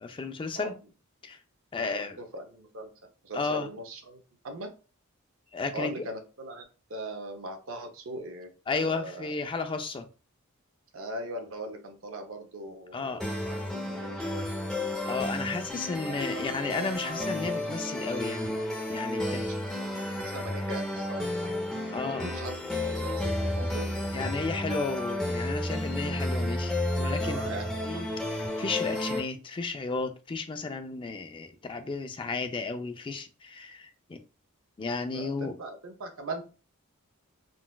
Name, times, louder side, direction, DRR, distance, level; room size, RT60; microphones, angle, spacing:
voice 1, 0.0-0.7 1.2-1.4 1.7-2.2 3.3-3.7 5.5-6.1 8.7-10.1 12.9-13.2 15.1-18.6 18.9-19.5 21.9-22.3 24.1-27.4 27.8-34.2 34.8-35.6, left 4 dB, 25° left, 7 dB, 0.3 m, -33 dB
voice 2, 1.8-2.9 3.2-4.7 5.7-6.6 6.9-9.3 10.9-14.5 16.0-16.4 19.1-22.5 22.8-23.9 27.2-27.9 31.5-31.7 35.0-36.4, right 1 dB, 65° right, 5 dB, 0.6 m, -40 dB
sound 1, 13.2-29.2, left 1 dB, 5° left, 0.7 m, -32 dB
3.8 x 2.4 x 2.2 m, 0.33 s
head